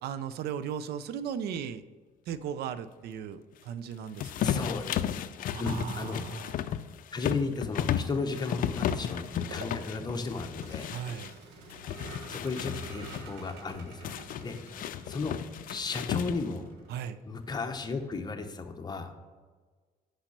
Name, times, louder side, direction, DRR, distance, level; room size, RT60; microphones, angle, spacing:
voice 1, 0.0-1.8 2.3-4.7 5.5-6.5 10.9-11.3 14.2-14.3 16.9-17.2, right 8 dB, 70° right, 14 dB, 0.5 m, -37 dB
sound 1, 4.2-11.3 11.7-13.3 14.0-16.6, left 10 dB, 55° left, 0.4 m, -34 dB
voice 2, 4.4-5.2 5.6-6.2 7.1-10.9 12.3-14.1 14.4-14.6 15.1-15.4 15.7-16.7 17.2-19.1, left 3 dB, 25° left, 5 dB, 0.8 m, -34 dB
Vehicle, 7.9-17.1, right 2 dB, 85° right, 1.2 m, -48 dB
5.9 x 5.6 x 6.6 m, 1.4 s
cardioid pair, 110°, 17 cm